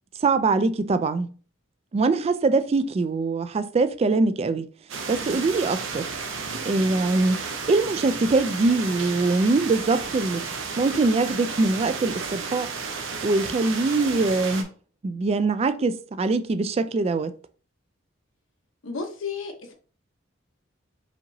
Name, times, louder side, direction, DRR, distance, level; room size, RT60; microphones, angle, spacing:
voice 1, 0.2-1.3 1.9-4.7 5.1-6.1 6.7-10.5 10.8-12.7 13.2-14.7 15.0-17.3, right 3 dB, 30° right, 0.3 m, -23 dB
sound 1, 4.9-14.6, right 4 dB, 75° right, 0.7 m, -33 dB
voice 2, 18.8-19.7, left 5 dB, 80° left, 0.9 m, -32 dB
5.0 x 2.9 x 2.7 m
head